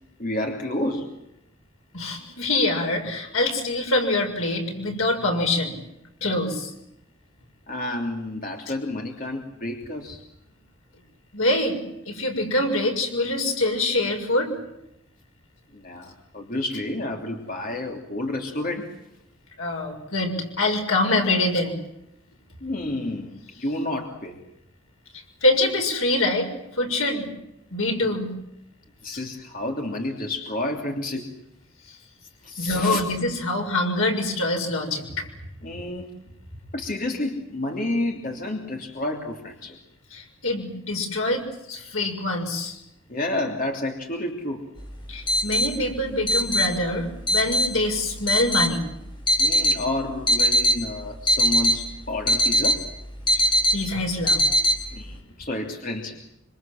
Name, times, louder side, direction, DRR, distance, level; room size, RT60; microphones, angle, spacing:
voice 1, 0.2-1.1 7.7-10.2 15.7-19.0 22.6-24.4 29.0-31.3 32.4-33.0 35.6-36.1 36.7-39.8 43.1-44.7 49.4-52.9 54.9-56.2, left 1 dB, 40° left, 2 dB, 2.9 m, -30 dB
voice 2, 1.9-5.8 6.2-6.7 11.3-11.8 12.1-14.5 19.6-21.8 25.4-26.5 26.8-27.3 27.7-28.3 32.6-35.3 40.1-42.7 45.1-48.8 53.3-53.4 53.7-54.4, left 2 dB, 80° left, 3 dB, 6.8 m, -24 dB
sound 1, 44.8-55.1, equal, 20° left, 4.5 m, -23 dB
26.0 x 26.0 x 7.7 m, 0.83 s
head